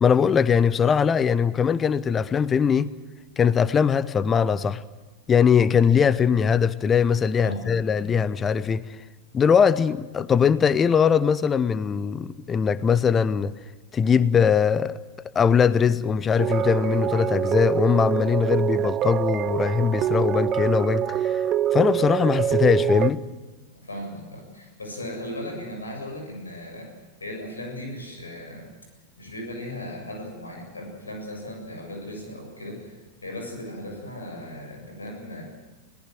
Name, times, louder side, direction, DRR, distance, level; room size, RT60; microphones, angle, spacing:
voice 1, 0.0-2.9 3.4-4.8 5.3-8.9 9.3-13.5 13.9-15.0 15.3-21.4 21.7-23.2, left 6 dB, 20° left, 0.8 m, -21 dB
voice 2, 7.4-8.1 23.7-28.7 29.2-35.5, left 1 dB, 75° left, 7.2 m, -37 dB
sound 1, 16.4-23.1, right 11 dB, 30° right, 0.6 m, -25 dB
22.0 x 18.0 x 7.7 m
figure-of-eight pair, 90°, 0 cm